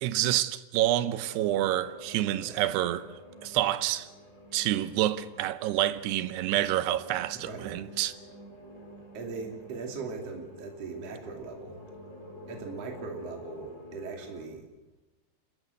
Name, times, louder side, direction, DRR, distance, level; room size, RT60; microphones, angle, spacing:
voice 1, 0.0-3.1 3.4-4.1 4.5-8.1, right 13 dB, 85° right, 2.9 m, -28 dB
sound 1, 1.1-14.5, equal, 20° left, 4.0 m, -48 dB
voice 2, 7.3-7.9 9.1-11.8 12.5-14.7, right 4 dB, 40° right, 3.5 m, -40 dB
29.5 x 13.0 x 8.0 m
omnidirectional pair, 4.6 m